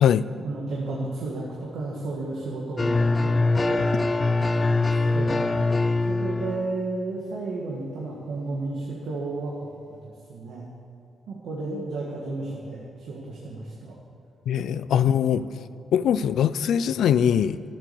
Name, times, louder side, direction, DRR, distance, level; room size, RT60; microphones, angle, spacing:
voice 1, 0.3-5.6 6.1-10.7 11.3-14.0 14.5-14.8 15.3-15.7, right 2 dB, 85° right, -3 dB, 1.8 m, -33 dB
sound 1, 2.8-6.7, left 3 dB, 25° left, 0.6 m, -23 dB
voice 2, 14.5-15.5 15.9-17.6, left 9 dB, 80° left, 15 dB, 0.4 m, -21 dB
13.0 x 8.7 x 7.0 m, 2.5 s
cardioid pair, 105°, 0 cm